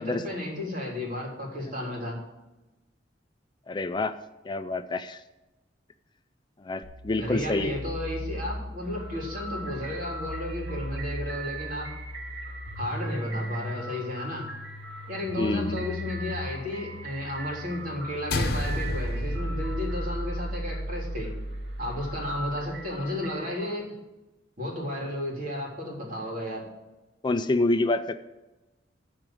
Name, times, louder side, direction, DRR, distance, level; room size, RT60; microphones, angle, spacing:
voice 1, 0.0-2.2 7.2-11.9 12.8-14.5 15.1-21.3 21.8-23.9 24.6-26.6, left 1 dB, 50° right, -2 dB, 3.5 m, -33 dB
voice 2, 3.7-4.1 4.4-5.2 6.6-7.7 15.4-15.8 27.2-28.1, left 2 dB, 25° left, 10 dB, 0.4 m, -27 dB
sound 1, 6.8-18.3, left 1 dB, 25° right, 1.6 m, -38 dB
sound 2, 8.8-23.8, right 2 dB, 80° right, 2.1 m, -42 dB
sound 3, 18.3-22.9, equal, 60° left, 1.0 m, -31 dB
13.5 x 5.0 x 7.8 m, 1.0 s
head